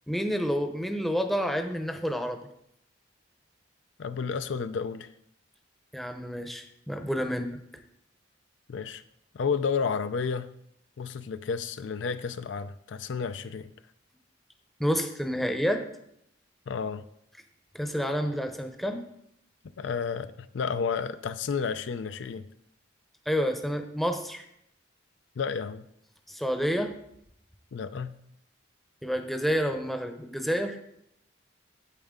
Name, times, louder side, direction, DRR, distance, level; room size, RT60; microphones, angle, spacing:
voice 1, 0.1-2.4 5.9-7.6 14.8-15.8 17.7-19.0 23.3-24.4 26.3-26.9 29.0-30.8, equal, ahead, 5 dB, 0.7 m, -29 dB
voice 2, 4.0-5.1 8.7-9.0 9.3-10.5 11.0-13.7 16.7-17.0 19.8-22.5 25.4-25.9 27.7-28.1, left 5 dB, 70° left, 11 dB, 0.4 m, -31 dB
8.9 x 8.0 x 3.7 m, 0.73 s
head